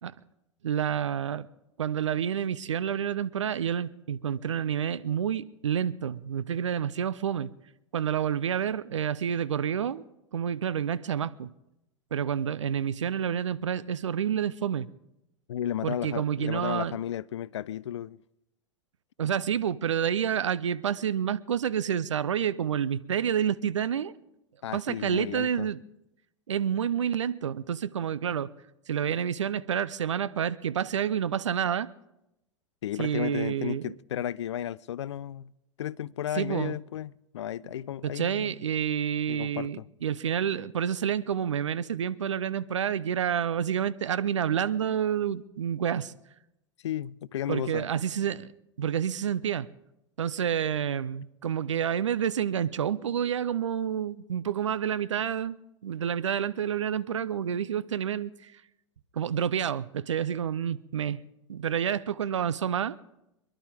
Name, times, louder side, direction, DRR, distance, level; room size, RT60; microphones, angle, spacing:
voice 1, 0.6-1.5 1.8-7.5 7.9-10.0 10.3-11.5 12.1-14.9 15.8-16.9 19.2-24.1 24.7-25.8 26.5-28.5 28.9-31.9 33.0-33.9 36.4-36.8 38.0-46.1 47.5-48.5 48.8-49.7 50.2-55.6 55.8-58.5 59.2-61.2 61.5-63.0, right 8 dB, 75° right, 0.6 m, -29 dB
voice 2, 15.5-18.2 24.6-25.7 32.8-35.5 35.8-38.6 39.3-39.9 46.8-47.9, left 11 dB, 70° left, 0.4 m, -34 dB
26.5 x 11.5 x 3.5 m
figure-of-eight pair, 90°, 16 cm